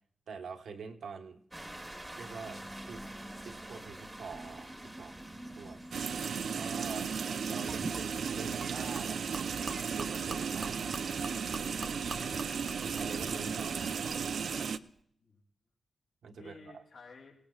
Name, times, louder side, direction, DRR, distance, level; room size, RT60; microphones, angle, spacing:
voice 1, 0.3-1.4 2.2-3.0 3.4-5.2 5.6-5.8 6.5-7.2 7.5-10.9 12.7-14.2 16.2-16.8, right 5 dB, 75° right, 3 dB, 1.3 m, -45 dB
sound 1, 1.5-14.3, right 1 dB, 10° right, 1.2 m, -49 dB
sound 2, 5.9-14.8, right 6 dB, 60° right, 0.5 m, -35 dB
Gurgling / Liquid, 7.7-14.5, right 3 dB, 30° right, 0.8 m, -45 dB
voice 2, 10.7-11.0 11.8-12.6 15.2-15.4 16.4-17.3, left 3 dB, 70° left, -4 dB, 2.8 m, -54 dB
26.5 x 18.0 x 2.4 m, 0.65 s
wide cardioid pair, 180°, 0 cm